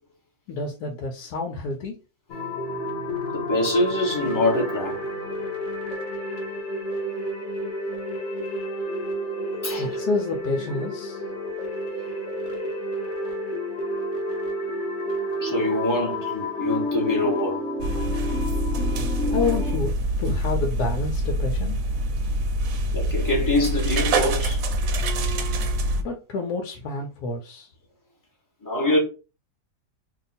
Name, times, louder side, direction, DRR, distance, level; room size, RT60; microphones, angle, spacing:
voice 1, 0.5-2.0 9.8-11.2 19.3-21.8 26.0-27.7, left 3 dB, 80° left, 1.2 m, -29 dB
sound 1, 2.3-19.8, left 1 dB, 55° left, 1.0 m, -30 dB
voice 2, 3.3-5.0 9.6-9.9 15.4-17.6 22.9-24.6 28.6-29.0, left 1 dB, 15° left, 0.8 m, -24 dB
sound 2, 17.8-26.0, right 1 dB, 65° right, 0.9 m, -25 dB
2.9 x 2.3 x 4.1 m
omnidirectional pair, 1.7 m